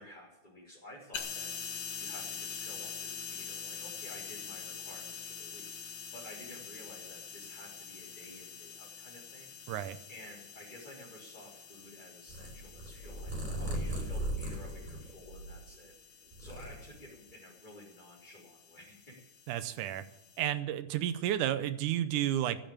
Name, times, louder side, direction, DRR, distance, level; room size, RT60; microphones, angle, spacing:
voice 1, 0.0-9.7 10.1-16.1 16.4-19.2, left 1 dB, 15° left, -7 dB, 3.9 m, -52 dB
sound 1, 1.1-20.5, left 7 dB, 60° left, 2.4 m, -45 dB
Purr, 12.3-15.8 16.2-17.3, right 1 dB, 10° right, 5.4 m, -38 dB
voice 2, 19.5-20.0 20.4-22.6, right 12 dB, 85° right, 13 dB, 2.3 m, -31 dB
15.0 x 8.9 x 8.7 m, 0.90 s
omnidirectional pair, 3.6 m